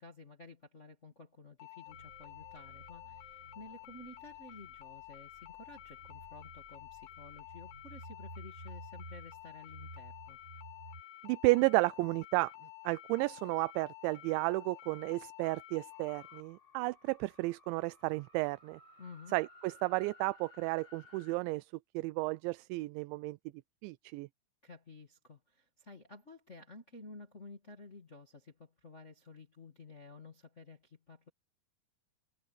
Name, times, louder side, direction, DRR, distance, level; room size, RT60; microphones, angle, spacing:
voice 1, 0.0-10.4 19.0-19.3 24.6-31.3, left 3 dB, 40° left, 0.9 m, -53 dB
sound 1, 1.6-16.4, left 15 dB, 80° left, 4.2 m, -51 dB
sound 2, 1.9-11.0, right 1 dB, 15° right, 6.0 m, -53 dB
voice 2, 11.2-12.5 12.8-18.8 19.3-23.4 23.8-24.3, right 23 dB, 85° right, 2.9 m, -32 dB
sound 3, 15.9-21.4, left 3 dB, 25° left, 6.6 m, -59 dB
omnidirectional pair, 5.2 m